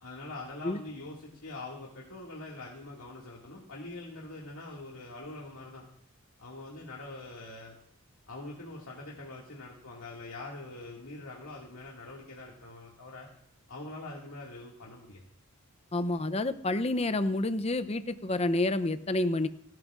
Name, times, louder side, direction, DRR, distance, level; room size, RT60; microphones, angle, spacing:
voice 1, 0.0-5.9 6.4-7.7 8.3-13.3 13.7-15.2, left 2 dB, 85° left, -4 dB, 2.1 m, -44 dB
voice 2, 15.9-19.5, left 2 dB, 30° left, 12 dB, 0.5 m, -29 dB
29.0 x 10.5 x 2.4 m, 0.72 s
head